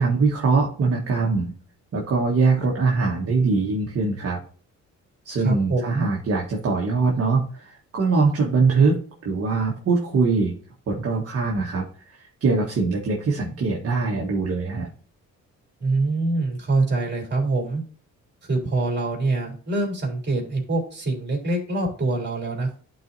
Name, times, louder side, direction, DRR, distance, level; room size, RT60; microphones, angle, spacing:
voice 1, 0.0-1.5 1.9-4.4 5.2-10.5 10.9-14.9, right 4 dB, 50° right, -1 dB, 1.5 m, -22 dB
voice 2, 5.4-6.1 15.8-17.8 18.4-22.8, right 2 dB, 35° right, 0 dB, 3.4 m, -24 dB
11.5 x 4.2 x 2.7 m, 0.42 s
cardioid pair, 90°, 30 cm